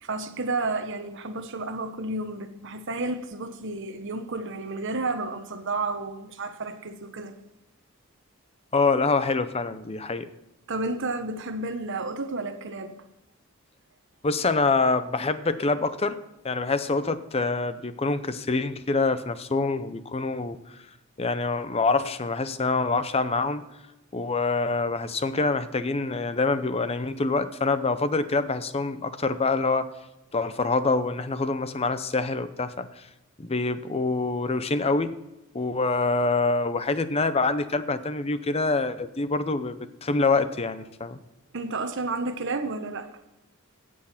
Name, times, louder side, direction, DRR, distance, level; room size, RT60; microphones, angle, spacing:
voice 1, 0.0-7.4 10.7-13.0 41.5-43.1, right 3 dB, 60° right, 1.1 m, -31 dB
voice 2, 8.7-10.3 14.2-16.2 16.4-20.8 21.2-23.7 24.1-29.9 30.3-33.0 33.4-35.2 35.5-39.8 40.0-41.2, left 3 dB, 30° left, 0.6 m, -25 dB
16.5 x 6.4 x 5.8 m
head